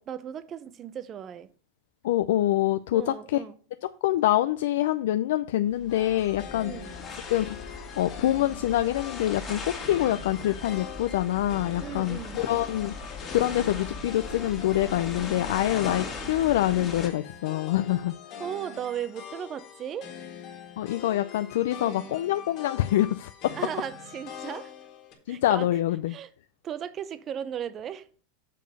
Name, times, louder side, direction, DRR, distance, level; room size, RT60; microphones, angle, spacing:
voice 1, 0.0-1.5 2.9-3.6 6.6-7.0 11.8-12.4 18.4-20.1 21.8-22.2 23.5-24.7 25.3-25.7 26.1-26.3 26.6-28.1, right 9 dB, 25° right, 0.6 m, -36 dB
voice 2, 2.0-3.4 4.0-6.7 7.3-18.1 20.8-23.5 25.3-26.2, left 13 dB, 75° left, 0.4 m, -26 dB
sound 1, 5.7-17.1, left 3 dB, 20° left, 1.9 m, -39 dB
sound 2, 5.9-25.1, left 7 dB, 40° left, 1.9 m, -43 dB
6.6 x 5.2 x 5.3 m
supercardioid pair, 150°, 0 cm